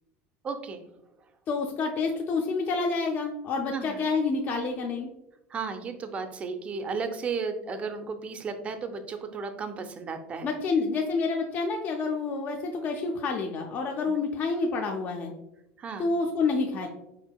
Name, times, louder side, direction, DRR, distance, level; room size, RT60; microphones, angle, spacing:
voice 1, 0.4-0.8 3.7-4.0 5.5-10.5 14.1-14.2 15.8-16.1, right 5 dB, 25° right, 7 dB, 0.4 m, -34 dB
voice 2, 1.5-5.1 10.4-15.3 16.0-16.9, left 4 dB, 35° left, 3 dB, 0.4 m, -28 dB
4.9 x 4.5 x 2.2 m, 0.90 s
cardioid pair, 150°, 6 cm